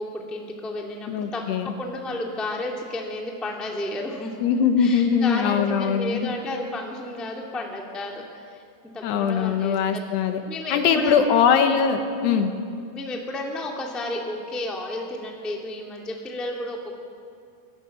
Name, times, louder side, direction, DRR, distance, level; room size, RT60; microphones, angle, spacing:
voice 1, 0.0-1.4 1.8-4.4 4.8-8.6 8.9-10.0 10.5-11.2 12.9-16.9, left 2 dB, ahead, 0 dB, 1.0 m, -32 dB
voice 2, 1.1-1.7 4.4-6.3 9.0-10.4 10.7-12.5, left 7 dB, 80° left, 6 dB, 3.5 m, -21 dB
26.0 x 17.5 x 7.2 m, 2.4 s
omnidirectional pair, 4.8 m